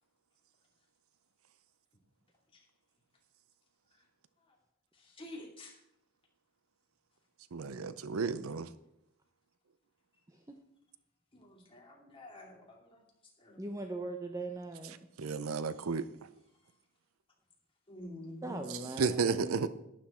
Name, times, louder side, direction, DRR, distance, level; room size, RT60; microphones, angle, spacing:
voice 1, 5.0-5.8 11.3-13.0 13.4-13.6 17.9-18.7, left 1 dB, 25° left, -1 dB, 2.7 m, -48 dB
voice 2, 7.5-8.7 15.2-16.1 19.0-19.7, right 5 dB, 75° right, 14 dB, 0.6 m, -32 dB
voice 3, 13.6-14.9 18.4-19.7, right 2 dB, 15° right, 5 dB, 0.7 m, -40 dB
11.5 x 10.5 x 4.3 m, 0.82 s
head